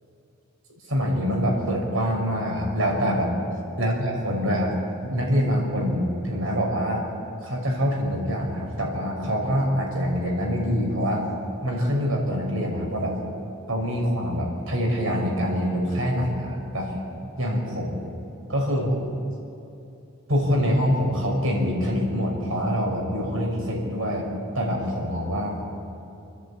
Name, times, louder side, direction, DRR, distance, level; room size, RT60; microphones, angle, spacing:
voice 1, 0.9-3.4 3.8-4.7 5.0-7.1 7.4-11.3 11.6-13.2 13.7-16.9 17.4-18.1 18.5-19.0 20.3-24.3 24.5-25.9, equal, 80° right, 0 dB, 5.9 m, -25 dB
29.5 x 10.5 x 8.7 m, 2.7 s
head